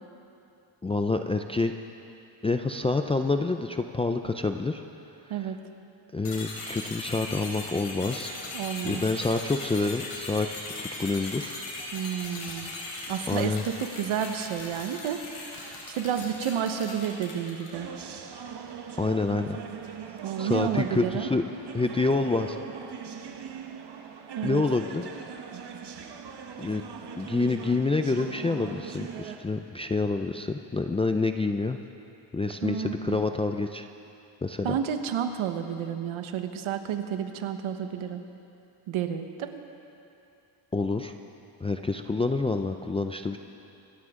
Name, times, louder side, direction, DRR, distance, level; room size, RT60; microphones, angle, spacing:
voice 1, 0.8-1.7 2.4-4.8 5.3-5.5 6.1-8.4 8.8-10.5 10.8-11.5 13.3-13.6 19.0-19.6 20.4-21.4 21.7-22.6 24.4-25.1 26.6-26.8 27.2-31.8 32.3-33.9 34.4-34.8 40.7-41.1 41.6-43.4, left 3 dB, 15° left, 6 dB, 0.3 m, -27 dB
sound 1, 6.2-17.8, left 2 dB, 75° left, 4.1 m, -39 dB
voice 2, 8.5-9.0 11.9-12.7 13.1-17.9 20.2-21.3 24.3-24.6 32.6-33.2 34.6-38.2 38.9-39.6, right 8 dB, 75° right, 7 dB, 1.3 m, -31 dB
sound 2, 17.7-29.4, right 7 dB, 55° right, 1.2 m, -41 dB
26.0 x 13.0 x 3.7 m, 2.8 s
cardioid pair, 125°, 49 cm